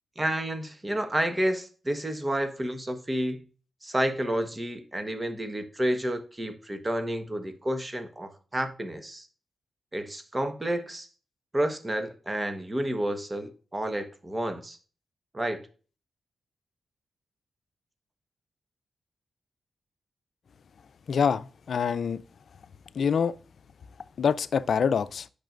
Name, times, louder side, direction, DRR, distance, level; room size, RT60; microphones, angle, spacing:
voice 1, 0.2-3.4 3.8-9.3 9.9-11.1 11.5-14.8 15.3-15.6, right 1 dB, 25° right, 1.3 m, -30 dB
voice 2, 21.1-22.2 23.0-23.3 24.2-25.2, left 6 dB, 70° left, 0.4 m, -25 dB
8.9 x 6.0 x 2.5 m
cardioid pair, 50°, 0 cm